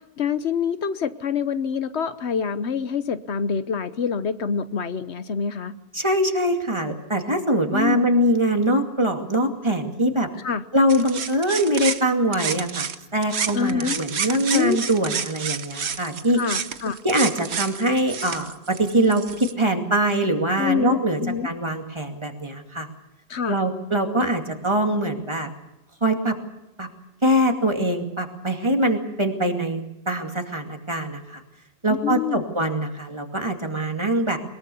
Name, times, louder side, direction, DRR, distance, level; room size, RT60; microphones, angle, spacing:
voice 1, 0.2-5.7 7.7-8.1 10.4-10.6 13.5-14.0 14.5-14.8 16.4-17.0 20.6-21.5 23.3-23.6 31.9-32.4, left 6 dB, 80° left, 12 dB, 1.3 m, -26 dB
voice 2, 5.9-10.3 10.7-16.4 17.0-22.9 23.5-25.5 26.0-26.3 26.8-26.9 27.2-31.4 31.8-34.4, right 1 dB, 25° right, 4 dB, 2.4 m, -23 dB
sound 1, 10.9-13.0 13.2-19.5, right 7 dB, 75° right, 1.3 m, -30 dB
22.5 x 21.5 x 7.0 m, 0.89 s
omnidirectional pair, 1.1 m